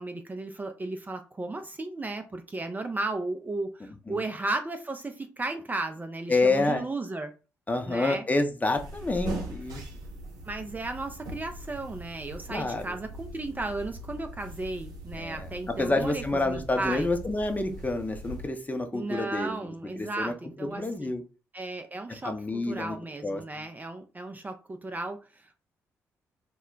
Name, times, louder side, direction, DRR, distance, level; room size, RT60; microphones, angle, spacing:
voice 1, 0.0-7.3 7.9-8.2 10.4-17.1 18.9-21.1 21.5-22.3 22.7-25.6, right 2 dB, 25° right, 0.4 m, -35 dB
voice 2, 6.3-6.8 7.7-9.8 12.5-12.9 15.1-19.6 20.0-20.3 20.6-21.2 22.1-23.0 23.2-23.7, left 2 dB, 25° left, 0.7 m, -28 dB
sound 1, 8.7-18.5, right 1 dB, 70° right, 0.7 m, -41 dB
2.2 x 2.1 x 3.7 m
hypercardioid pair, 45°, 7 cm